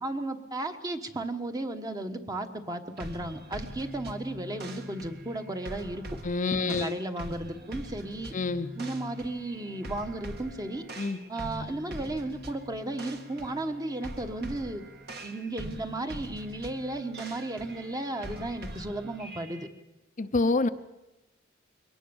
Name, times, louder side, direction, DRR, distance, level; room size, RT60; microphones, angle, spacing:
voice 1, 0.0-6.2 6.6-8.3 8.8-10.9 11.3-14.8 15.2-19.7, right 2 dB, 20° right, 7 dB, 1.2 m, -34 dB
sound 1, 3.0-19.7, right 1 dB, 55° right, 2.0 m, -43 dB
voice 2, 6.2-6.9 8.3-8.7 11.0-11.2 20.2-20.7, left 3 dB, 40° left, 9 dB, 0.7 m, -27 dB
22.5 x 18.5 x 7.1 m, 0.97 s
head